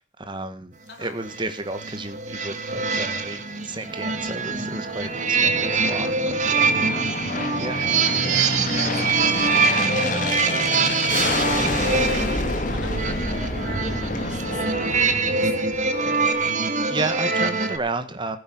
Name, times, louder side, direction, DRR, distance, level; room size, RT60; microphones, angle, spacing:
voice 1, 0.2-6.7 7.6-7.8 16.4-16.6 16.9-18.4, right 2 dB, 25° right, 9 dB, 1.6 m, -32 dB
sound 1, 1.2-17.8, right 4 dB, 40° right, 1.6 m, -24 dB
Aircraft, 3.3-16.1, left 2 dB, 45° left, 2.5 m, -28 dB
voice 2, 8.9-10.5 11.1-15.9, left 3 dB, 60° left, 4 dB, 3.5 m, -43 dB
16.0 x 8.7 x 6.1 m, 0.37 s
head